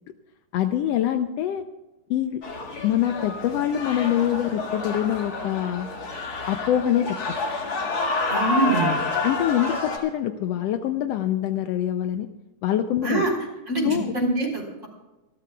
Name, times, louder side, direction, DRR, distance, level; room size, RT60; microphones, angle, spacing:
voice 1, 0.5-1.6 2.1-2.4 2.8-5.9 6.5-7.2 9.2-12.3 12.6-13.2 13.8-14.1, left 11 dB, 90° left, 8 dB, 1.4 m, -24 dB
sound 1, 2.4-10.0, left 3 dB, 35° left, 2.2 m, -29 dB
voice 2, 8.3-8.9 13.0-13.3 13.7-14.9, right 2 dB, 20° right, 0 dB, 4.1 m, -24 dB
27.0 x 13.0 x 2.3 m, 1.1 s
omnidirectional pair, 3.6 m